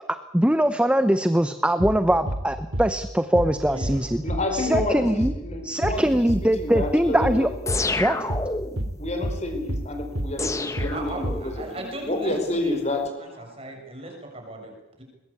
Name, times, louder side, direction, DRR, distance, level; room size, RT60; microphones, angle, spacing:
voice 1, 0.3-4.2 4.5-5.3 5.6-7.5 8.0-8.2, right 1 dB, 5° right, 10 dB, 0.7 m, -22 dB
sound 1, 1.8-2.0 2.3-2.5 2.7-2.9 3.3-3.5 3.8-4.0 4.3-4.5 4.7-4.9 5.2-5.4 5.8-6.0 6.3-6.5 6.7-6.9 7.2-7.4 7.7-7.9 8.3-8.5 8.8-9.0 9.2-9.4 9.7-9.9 10.1-10.3 10.8-11.0 11.2-11.4, equal, 70° right, 2.4 m, -28 dB
voice 2, 3.7-4.0 10.7-12.8 13.2-15.0, right 2 dB, 30° right, 2 dB, 6.7 m, -38 dB
voice 3, 4.2-6.1 6.4-7.5 9.0-13.5, left 2 dB, 35° left, 5 dB, 4.8 m, -29 dB
sound 2, 7.7-8.9 10.4-11.7, left 3 dB, 15° left, 1.2 m, -29 dB
22.0 x 21.0 x 8.5 m, 0.98 s
head